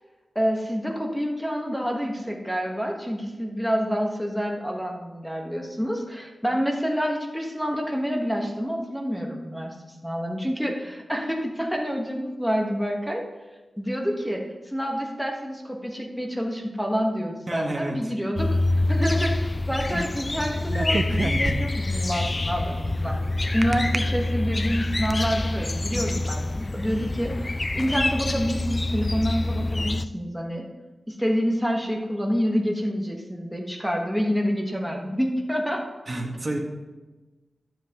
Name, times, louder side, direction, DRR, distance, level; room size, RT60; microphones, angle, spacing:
voice 1, 0.3-13.2 13.8-23.2 23.5-30.7 31.1-35.9, equal, ahead, 1 dB, 1.3 m, -28 dB
voice 2, 17.5-18.1 23.7-23.8 36.1-36.6, right 1 dB, 35° right, -1 dB, 1.6 m, -30 dB
sound 1, 18.4-30.0, left 2 dB, 35° left, 0.3 m, -26 dB
sound 2, 20.7-21.9 23.6-24.0 24.6-25.2, right 3 dB, 50° right, 0.6 m, -28 dB
11.5 x 7.5 x 3.0 m, 1.2 s
wide cardioid pair, 80°, 0 cm